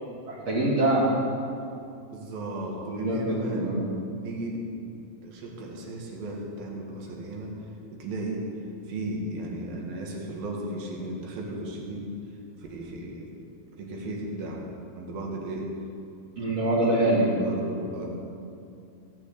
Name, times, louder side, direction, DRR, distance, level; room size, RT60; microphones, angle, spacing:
voice 1, 0.3-1.1 2.8-3.8 16.4-17.3, right 1 dB, 50° right, -8 dB, 3.4 m, -24 dB
voice 2, 2.1-3.9 4.2-4.8 5.2-7.5 7.9-8.5 8.9-12.1 12.6-13.4 13.8-14.7 15.0-15.8 17.2-18.1, right 1 dB, 80° right, -1 dB, 3.6 m, -35 dB
16.5 x 7.1 x 8.4 m, 2.5 s
omnidirectional pair, 4.1 m